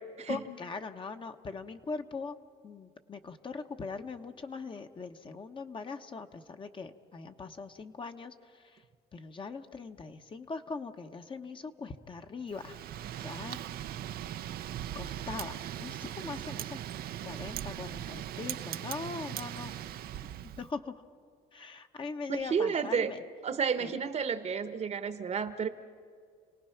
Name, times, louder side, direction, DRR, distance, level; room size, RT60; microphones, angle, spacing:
voice 1, 0.3-2.4 2.6-8.8 9.1-12.8 13.2-13.6 14.9-16.8 17.2-19.7 20.6-21.0 21.5-23.2 23.8-24.0, left 4 dB, 30° left, 6 dB, 1.1 m, -41 dB
Wind, 12.5-20.7, right 11 dB, 65° right, 0.7 m, -39 dB
voice 2, 22.3-23.1 23.4-25.7, right 6 dB, 40° right, 11 dB, 1.1 m, -31 dB
29.5 x 18.5 x 5.9 m, 2.1 s
cardioid pair, 110°, 17 cm